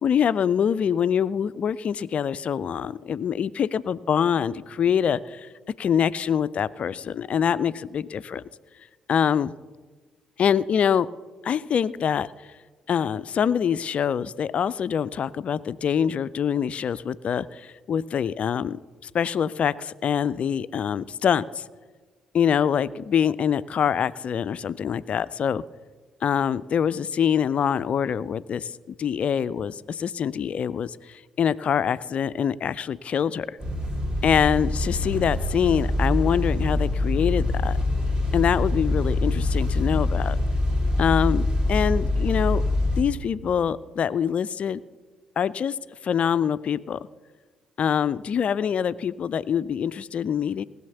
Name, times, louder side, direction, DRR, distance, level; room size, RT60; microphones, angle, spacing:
voice 1, 0.0-5.5 5.8-8.4 9.1-9.5 10.4-11.1 11.4-12.3 12.9-18.8 19.0-21.6 22.3-25.6 26.2-33.6 34.2-37.8 38.3-40.4 41.0-42.6 43.0-44.8 45.4-45.8 46.0-47.0 47.8-50.6, left 8 dB, 45° left, 18 dB, 0.4 m, -24 dB
sound 1, 33.6-43.0, left 2 dB, 30° right, 2.7 m, -24 dB
19.0 x 6.4 x 6.9 m, 1.4 s
figure-of-eight pair, 45°, 3 cm